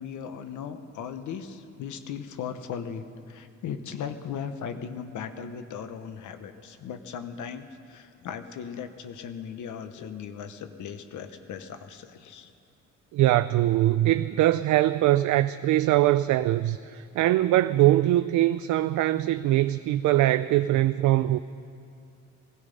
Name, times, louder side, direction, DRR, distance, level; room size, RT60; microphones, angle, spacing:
voice 1, 0.0-12.5, left 7 dB, 80° left, 8 dB, 1.1 m, -37 dB
voice 2, 13.1-21.4, right 15 dB, 75° right, 12 dB, 0.5 m, -22 dB
20.0 x 13.5 x 5.3 m, 2.4 s
cardioid pair, 90°, 30 cm